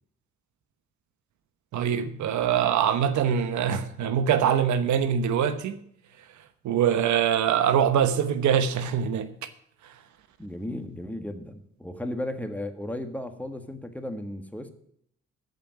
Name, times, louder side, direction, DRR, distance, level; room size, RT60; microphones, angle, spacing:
voice 1, 1.7-5.8 6.6-9.3, right 8 dB, 80° right, 1.1 m, -23 dB
voice 2, 10.4-14.7, left 1 dB, 5° left, 1.6 m, -35 dB
14.0 x 5.2 x 8.9 m
cardioid pair, 80°, 29 cm